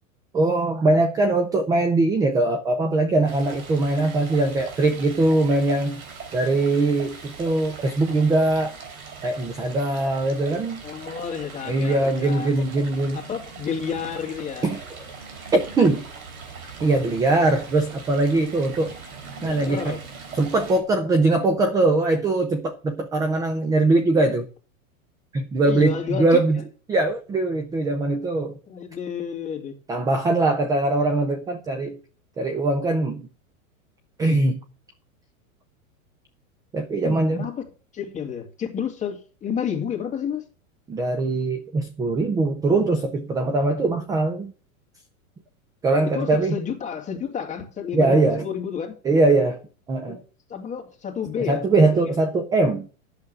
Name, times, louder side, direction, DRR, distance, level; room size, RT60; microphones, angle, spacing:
voice 1, 0.3-6.0 6.3-8.8 9.2-10.8 11.7-13.2 14.6-14.8 15.5-16.1 16.8-18.9 19.4-20.0 20.3-24.5 25.3-26.6 26.9-28.6 29.9-32.0 32.4-33.3 34.2-34.6 36.7-37.5 40.9-44.5 45.8-46.6 47.9-48.4 49.0-49.6 49.9-50.2 51.5-52.9, right 2 dB, 10° right, 0.4 m, -21 dB
Stream, 3.3-20.8, right 5 dB, 85° right, 3.6 m, -41 dB
voice 2, 10.8-12.5 13.1-14.7 19.4-20.0 25.6-26.4 28.7-29.7 36.9-40.4 46.0-49.0 50.1-50.2 50.5-52.1, left 7 dB, 15° left, 2.1 m, -31 dB
8.4 x 6.8 x 7.4 m
hypercardioid pair, 135°, 42 cm